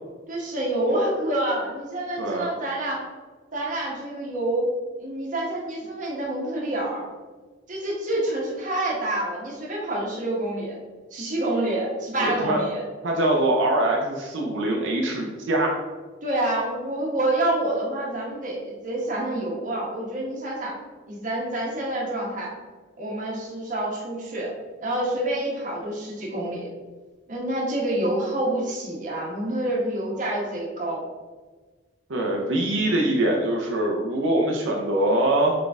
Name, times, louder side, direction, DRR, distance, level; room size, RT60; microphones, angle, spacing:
voice 1, 0.3-3.1 3.5-4.7 5.0-7.0 7.7-10.8 11.1-12.8 16.2-20.8 21.1-22.5 23.0-24.5 24.8-26.7 27.3-31.1, right 1 dB, 40° right, -3 dB, 1.1 m, -27 dB
voice 2, 12.2-12.6 13.0-15.8 32.1-35.5, right 1 dB, 80° right, -1 dB, 0.6 m, -23 dB
3.9 x 3.7 x 3.5 m, 1.3 s
head